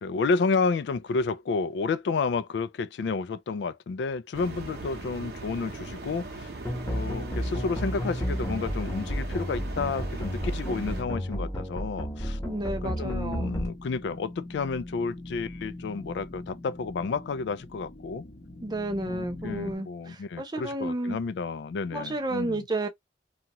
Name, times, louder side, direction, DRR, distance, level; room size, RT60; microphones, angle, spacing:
voice 1, 0.0-6.5 6.9-12.4 12.8-18.2 19.1-22.6, left 4 dB, 70° left, 0.3 m, -31 dB
sound 1, 4.3-11.0, right 2 dB, 60° right, 0.7 m, -40 dB
sound 2, 6.6-13.7, equal, 15° left, 0.9 m, -32 dB
sound 3, 6.8-19.8, left 1 dB, 50° left, 0.8 m, -46 dB
voice 2, 12.4-13.5 18.6-21.2 21.9-22.9, right 1 dB, 25° right, 0.6 m, -31 dB
2.7 x 2.4 x 2.9 m
head